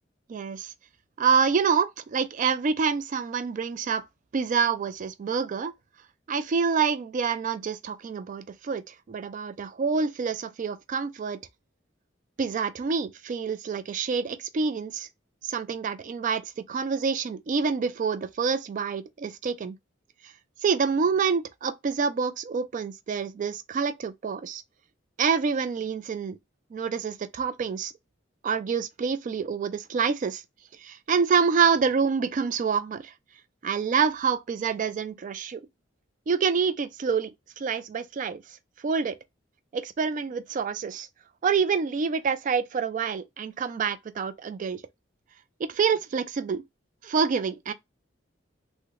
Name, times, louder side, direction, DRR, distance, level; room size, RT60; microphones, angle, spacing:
voice 1, 0.3-0.7 1.2-4.1 4.3-5.7 6.3-11.4 12.4-15.1 15.4-16.4 16.7-19.8 20.6-24.6 25.2-26.4 26.7-27.9 28.4-30.4 30.8-33.1 33.6-35.6 36.3-37.3 37.6-38.4 38.8-39.1 39.7-41.1 41.4-44.8 45.6-46.6 47.0-47.7, right 6 dB, 45° right, 0.3 m, -27 dB
3.6 x 2.1 x 3.0 m
head